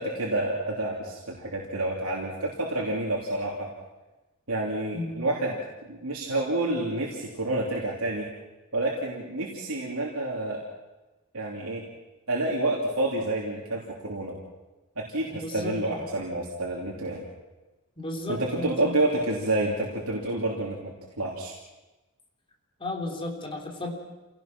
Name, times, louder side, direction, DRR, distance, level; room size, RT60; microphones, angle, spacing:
voice 1, 0.0-3.7 4.5-5.6 5.9-8.3 8.7-10.6 11.3-11.8 12.3-14.3 15.0-17.2 18.3-21.5, right 2 dB, 75° right, -3 dB, 3.1 m, -29 dB
voice 2, 4.9-5.3 15.3-16.1 18.0-19.1 22.8-23.9, left 2 dB, 25° left, 1 dB, 3.4 m, -34 dB
28.5 x 17.5 x 6.1 m, 1.1 s
head